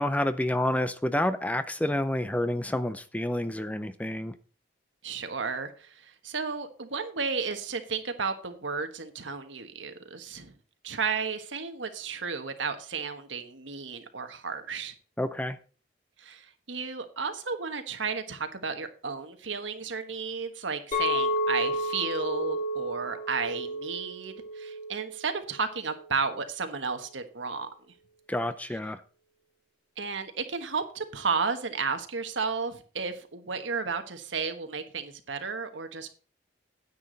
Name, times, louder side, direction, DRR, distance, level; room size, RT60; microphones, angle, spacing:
voice 1, 0.0-4.3 15.2-15.6 28.3-29.0, left 1 dB, 10° left, 0.5 m, -29 dB
voice 2, 5.0-10.5 10.8-14.9 16.2-27.7 30.0-36.1, right 5 dB, 90° right, 1.4 m, -33 dB
Chink clink, 20.9-26.1, left 1 dB, 40° left, 2.9 m, -32 dB
9.7 x 8.7 x 4.0 m
head